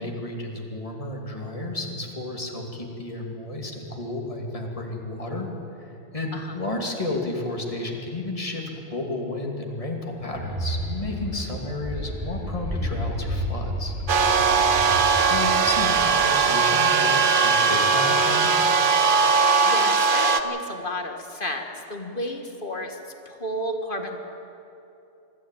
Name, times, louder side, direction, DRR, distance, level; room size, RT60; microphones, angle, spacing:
voice 1, 0.0-5.5 5.8-8.6 8.9-13.9 15.3-18.8, left 2 dB, 30° left, 1 dB, 2.7 m, -32 dB
sound 1, 10.3-16.5, equal, 85° right, 6.1 m, -31 dB
sound 2, 14.1-20.4, right 5 dB, 50° right, 0.9 m, -20 dB
voice 2, 14.5-14.9 19.3-23.0 23.3-24.2, left 1 dB, 45° left, 4 dB, 1.9 m, -32 dB
24.5 x 13.5 x 9.2 m, 2.9 s
omnidirectional pair, 1.2 m